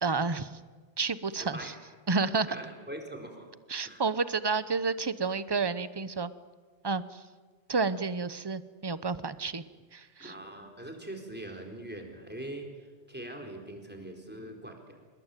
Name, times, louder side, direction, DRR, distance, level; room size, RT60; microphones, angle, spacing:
voice 1, 0.0-0.6 1.0-1.7 2.1-2.5 3.7-6.3 6.8-7.2 7.7-9.6 9.9-10.3, right 4 dB, 25° right, 15 dB, 0.8 m, -30 dB
voice 2, 1.4-1.8 2.5-3.5 3.8-4.0 10.2-15.0, right 1 dB, 10° right, 2 dB, 4.3 m, -42 dB
26.5 x 21.0 x 9.2 m, 1.4 s
omnidirectional pair, 1.2 m